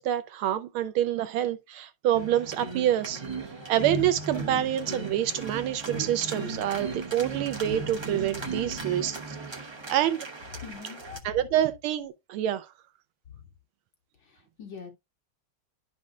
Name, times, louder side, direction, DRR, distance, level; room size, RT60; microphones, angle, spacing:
voice 1, 0.0-3.2 3.7-10.2 11.2-12.7, right 11 dB, 80° right, 1.5 m, -27 dB
sound 1, 2.1-11.2, right 3 dB, 45° right, 0.3 m, -36 dB
voice 2, 10.6-11.3 14.3-14.9, left 7 dB, 65° left, 2.7 m, -43 dB
11.0 x 5.4 x 2.3 m
omnidirectional pair, 2.3 m